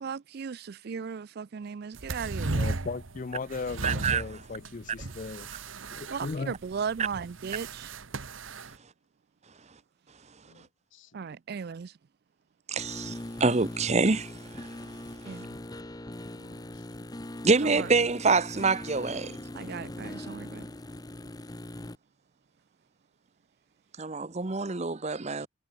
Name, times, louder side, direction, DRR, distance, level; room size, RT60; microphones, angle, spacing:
voice 1, 0.0-2.6 6.1-7.9 11.1-11.9 15.2-15.6 17.6-17.9 19.5-20.7, right 6 dB, 50° right, 0.4 m, -36 dB
sound 1, 1.9-8.8, right 2 dB, 70° right, 1.3 m, -36 dB
voice 2, 2.5-5.5 5.9-6.5, left 4 dB, 40° left, 0.4 m, -37 dB
voice 3, 3.8-4.2 12.7-14.7 17.4-19.4 24.0-25.5, right 4 dB, 30° right, 0.8 m, -26 dB
voice 4, 10.4-11.4 16.3-17.2 25.4-25.5, left 3 dB, 65° left, 3.0 m, -60 dB
sound 2, 12.8-22.0, left 1 dB, 20° left, 0.9 m, -41 dB
head